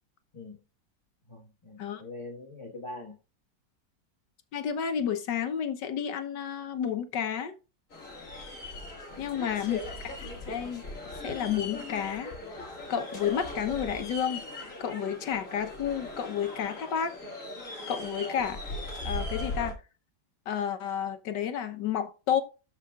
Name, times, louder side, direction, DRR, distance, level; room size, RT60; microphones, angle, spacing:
voice 1, 1.3-3.2 9.1-9.7, left 2 dB, 20° left, 1.6 m, -43 dB
voice 2, 4.5-7.5 9.2-9.8 10.2-10.8 11.2-12.6 12.9-14.4 14.8-17.1 17.9-18.6 19.0-19.8 20.5-22.4, left 8 dB, 80° left, 1.6 m, -31 dB
sound 1, 7.9-19.7, left 2 dB, 50° left, 2.5 m, -39 dB
12.5 x 5.5 x 2.4 m
omnidirectional pair, 1.9 m